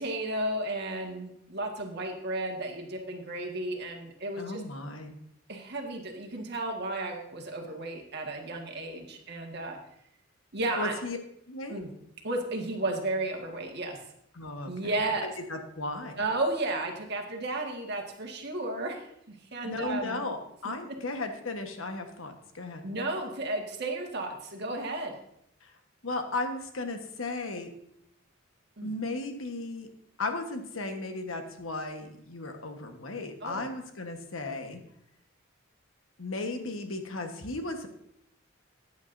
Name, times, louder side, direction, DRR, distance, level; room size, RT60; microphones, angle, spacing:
voice 1, 0.0-4.6 5.5-9.8 10.5-10.9 11.7-11.9 12.2-14.0 14.7-15.3 16.2-20.2 22.8-25.2 28.8-28.9 33.4-33.7, right 2 dB, 55° right, 2 dB, 1.7 m, -33 dB
voice 2, 4.4-5.1 10.7-11.2 11.5-11.8 14.3-14.7 15.2-16.2 19.6-22.8 25.6-25.7 26.0-27.7 28.8-29.9 30.2-34.8 36.2-37.9, left 2 dB, 80° left, 5 dB, 1.3 m, -35 dB
15.0 x 9.5 x 2.7 m, 0.75 s
head